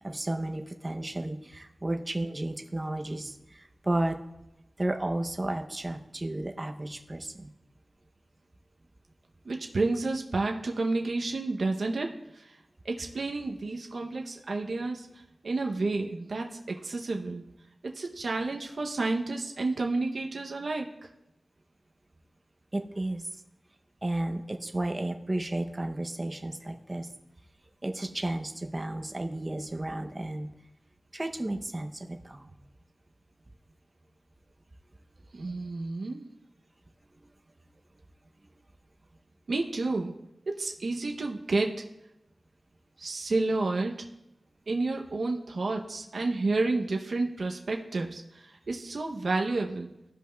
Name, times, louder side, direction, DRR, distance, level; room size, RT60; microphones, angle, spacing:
voice 1, 0.0-4.2 4.8-7.5 22.7-23.3 24.0-27.1 27.8-30.5 31.1-32.5, right 1 dB, 25° right, 5 dB, 0.6 m, -33 dB
voice 2, 9.4-12.5 12.8-15.1 15.4-17.4 17.8-20.9 35.3-36.3 39.5-40.1 40.5-41.8 43.0-43.9 44.7-49.9, right 3 dB, 65° right, 2 dB, 0.6 m, -30 dB
14.5 x 5.3 x 2.2 m, 0.88 s
wide cardioid pair, 105°, 0 cm